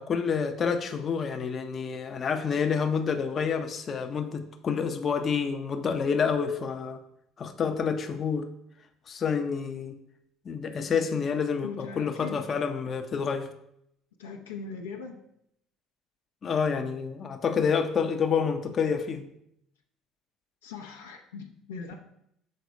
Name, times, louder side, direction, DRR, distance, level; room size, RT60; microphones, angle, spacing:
voice 1, 0.0-7.0 7.4-8.5 9.1-10.0 10.4-13.5 16.4-19.3, left 6 dB, 40° left, 6 dB, 0.7 m, -28 dB
voice 2, 11.6-12.4 14.2-15.1 20.6-21.9, left 5 dB, 85° left, 1 dB, 0.8 m, -40 dB
6.6 x 4.0 x 4.7 m, 0.75 s
hypercardioid pair, 65°, 0 cm